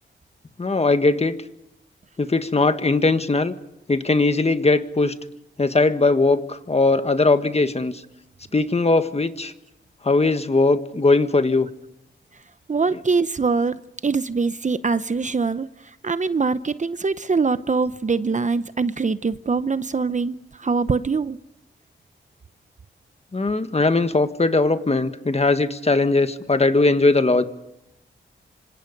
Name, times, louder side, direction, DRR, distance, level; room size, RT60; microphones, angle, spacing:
voice 1, 0.6-1.3 2.2-3.5 3.9-5.1 5.6-8.0 8.5-9.5 10.0-11.7 23.3-27.4, left 3 dB, 30° left, 1.6 m, -19 dB
voice 2, 12.7-15.7 16.0-21.4, right 4 dB, 35° right, 0.8 m, -23 dB
26.5 x 25.5 x 5.3 m
cardioid pair, 75°, 20 cm